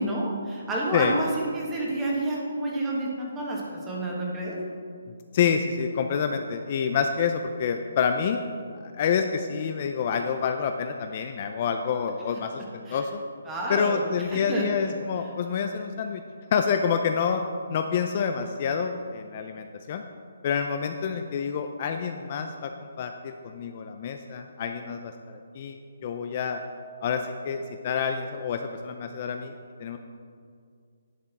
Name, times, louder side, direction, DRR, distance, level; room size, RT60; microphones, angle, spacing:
voice 1, 0.0-4.6 12.9-13.0 13.4-14.9, right 1 dB, 10° right, -3 dB, 1.3 m, -29 dB
voice 2, 5.3-8.4 9.0-13.2 13.7-16.2 16.5-17.4 17.7-20.0 20.4-22.7 23.0-26.6 27.0-29.5 29.8-30.0, left 6 dB, 35° left, 6 dB, 0.4 m, -28 dB
11.0 x 7.6 x 4.1 m, 2.2 s
hypercardioid pair, 165°, 0 cm